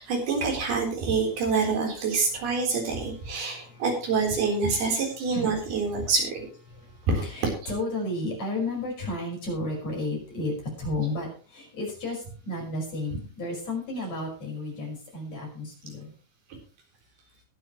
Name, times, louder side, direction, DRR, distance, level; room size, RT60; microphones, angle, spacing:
voice 1, 0.0-6.5 7.1-7.3, right 4 dB, 80° right, 0 dB, 6.0 m, -26 dB
voice 2, 3.2-3.8 4.8-4.9 5.3-5.5 6.7-10.5 10.8-16.1, left 2 dB, 45° left, 0 dB, 6.5 m, -33 dB
21.0 x 8.8 x 3.1 m, 0.39 s
omnidirectional pair, 4.4 m